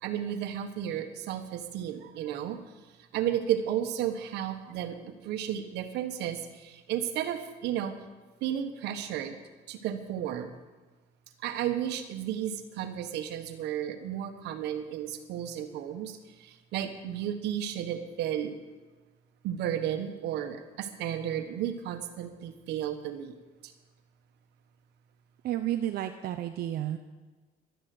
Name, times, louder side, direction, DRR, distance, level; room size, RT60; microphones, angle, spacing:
voice 1, 0.0-2.6 3.1-7.9 8.4-9.4 9.7-10.5 11.4-18.5 19.4-23.3 23.6-23.7, right 10 dB, 85° right, 8 dB, 1.5 m, -33 dB
voice 2, 25.4-27.0, right 12 dB, 65° right, 6 dB, 0.8 m, -31 dB
12.0 x 11.0 x 8.0 m, 1.3 s
cardioid pair, 110°, 17 cm